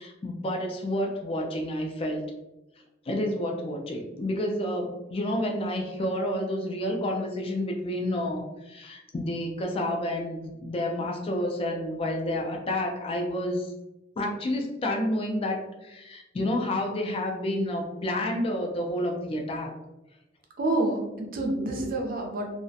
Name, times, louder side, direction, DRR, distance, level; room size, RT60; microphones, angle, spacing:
voice 1, 0.0-2.2 3.1-13.7 14.2-19.7, left 1 dB, 30° left, 2 dB, 0.3 m, -29 dB
voice 2, 20.6-22.5, right 2 dB, 45° right, 1 dB, 0.5 m, -28 dB
2.3 x 2.0 x 2.6 m, 0.97 s
head